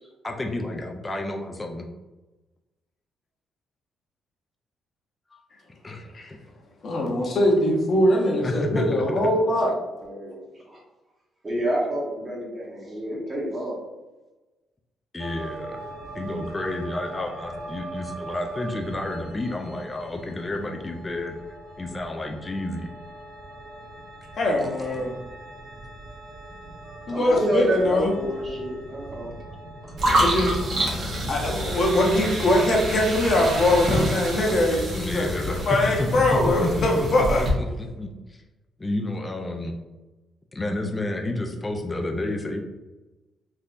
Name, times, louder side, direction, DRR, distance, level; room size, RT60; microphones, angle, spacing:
voice 1, 0.2-1.9 5.3-5.4 5.8-6.2 8.4-9.2 15.1-15.9 16.1-21.4 21.8-22.9 24.9-25.0 29.5-29.6 35.0-35.6 36.0-37.1 37.4-38.4 38.8-39.7 40.5-42.6, left 2 dB, 20° left, 3 dB, 0.4 m, -30 dB
voice 2, 6.8-9.7 24.4-25.1 27.1-28.1 30.2-30.6 31.3-37.4, left 1 dB, 50° left, -1 dB, 0.8 m, -22 dB
voice 3, 10.0-10.4 10.7-10.8 11.4-13.8 27.1-29.3 29.8-29.9, equal, 30° right, -4 dB, 1.2 m, -28 dB
sound 1, 15.2-32.2, right 2 dB, 70° right, 0.5 m, -41 dB
sound 2, 30.0-37.5, equal, 55° right, 0.9 m, -27 dB
3.4 x 2.7 x 2.5 m, 1.1 s
cardioid pair, 90°, 0 cm